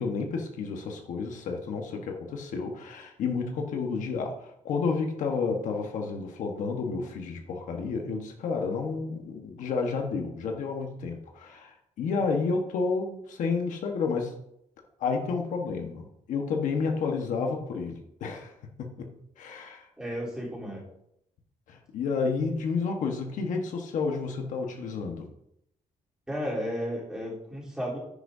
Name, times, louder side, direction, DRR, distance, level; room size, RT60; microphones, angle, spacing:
voice 1, 0.0-14.4 15.0-18.5 18.8-19.9 21.7-25.3, left 4 dB, 70° left, 2 dB, 1.3 m, -31 dB
voice 2, 20.0-20.9 26.3-28.0, equal, 5° right, -6 dB, 3.5 m, -33 dB
10.5 x 10.0 x 2.7 m, 0.77 s
cardioid pair, 170°, 14 cm